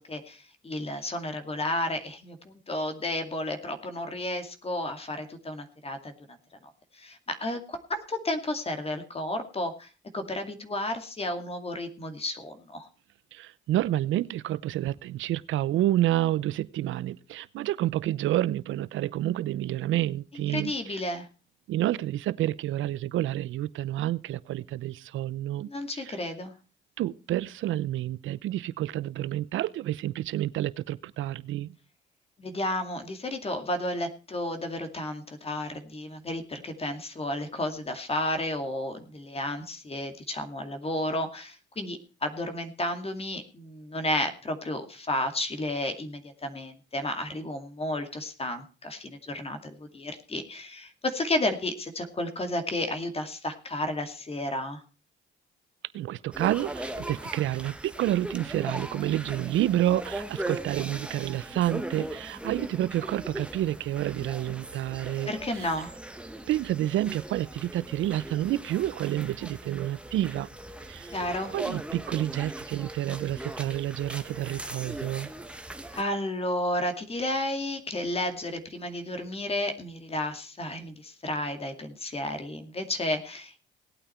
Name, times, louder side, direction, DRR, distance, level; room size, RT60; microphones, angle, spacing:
voice 1, 0.0-6.1 6.6-12.9 20.5-21.3 25.7-26.5 32.4-54.8 65.3-65.9 71.1-71.5 75.9-83.6, left 1 dB, 30° left, 7 dB, 2.4 m, -32 dB
voice 2, 13.3-21.0 21.7-26.2 27.0-31.7 55.9-65.7 66.5-70.5 70.9-71.1 71.4-75.3, right 14 dB, 80° right, 18 dB, 0.7 m, -29 dB
sound 1, 56.3-76.0, right 1 dB, 5° right, 1.4 m, -39 dB
18.5 x 8.9 x 4.4 m, 0.35 s
cardioid pair, 90°, 20 cm